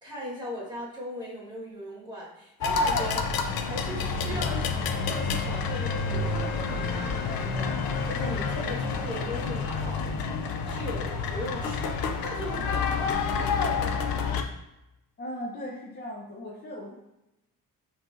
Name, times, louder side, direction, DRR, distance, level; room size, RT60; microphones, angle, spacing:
voice 1, 0.0-10.1 10.6-13.4, equal, 10° right, -5 dB, 1.4 m, -38 dB
sound 1, 2.6-14.4, left 5 dB, 85° left, 0.5 m, -28 dB
voice 2, 15.2-16.9, left 1 dB, 30° left, -2 dB, 0.6 m, -38 dB
5.6 x 3.1 x 2.5 m, 0.93 s
cardioid pair, 130°, 35 cm